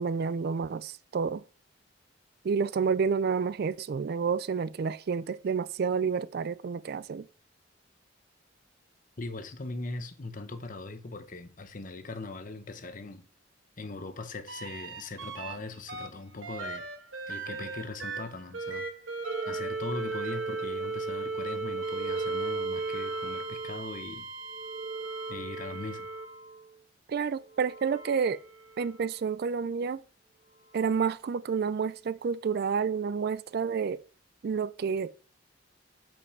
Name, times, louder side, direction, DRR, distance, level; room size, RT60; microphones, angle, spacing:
voice 1, 0.0-1.4 2.4-7.3 27.1-28.4 28.8-30.0 30.7-34.0 34.4-35.1, right 6 dB, 55° right, 0.4 m, -29 dB
voice 2, 9.2-13.2 13.8-16.9 17.3-18.9 19.5-24.3 25.3-26.1, left 3 dB, 45° left, 0.8 m, -40 dB
sound 1, 14.5-15.5 15.9-26.7 27.5-29.1 30.8-30.9, right 3 dB, 85° right, 1.5 m, -36 dB
5.5 x 5.3 x 6.6 m
head